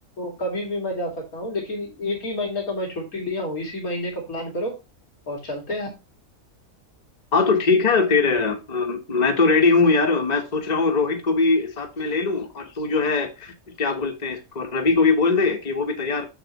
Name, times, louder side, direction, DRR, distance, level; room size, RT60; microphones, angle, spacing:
voice 1, 0.2-4.8 5.3-5.9, left 1 dB, 90° left, 0 dB, 2.7 m, -29 dB
voice 2, 7.3-16.3, left 4 dB, 30° left, 4 dB, 1.3 m, -21 dB
7.6 x 6.9 x 3.0 m, 0.26 s
omnidirectional pair, 1.5 m